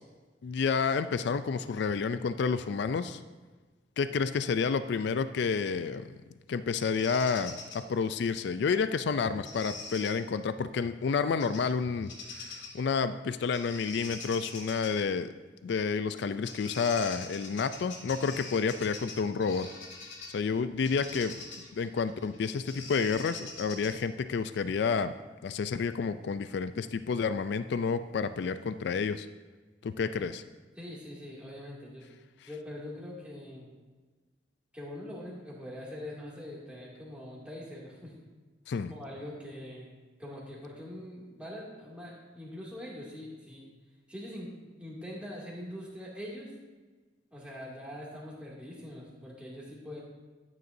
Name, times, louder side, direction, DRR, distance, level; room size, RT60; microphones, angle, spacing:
voice 1, 0.4-3.2 4.0-6.1 6.5-15.3 15.6-19.7 20.3-21.3 21.8-25.1 25.4-29.3 29.8-30.4 38.7-38.9, left 5 dB, 65° left, 12 dB, 0.3 m, -30 dB
Bird vocalization bird call bird song, 6.8-7.8 9.4-10.1 11.4-11.7 12.0-12.8 13.5-14.9 16.1-16.2 16.5-20.4 20.8-24.1, left 4 dB, 85° left, 1.8 m, -43 dB
voice 2, 30.8-32.1 32.5-33.7 34.7-38.1 38.7-43.7 44.1-44.5 44.8-46.5 47.3-50.0, left 1 dB, 5° right, -6 dB, 2.4 m, -43 dB
13.0 x 9.5 x 2.7 m, 1.3 s
head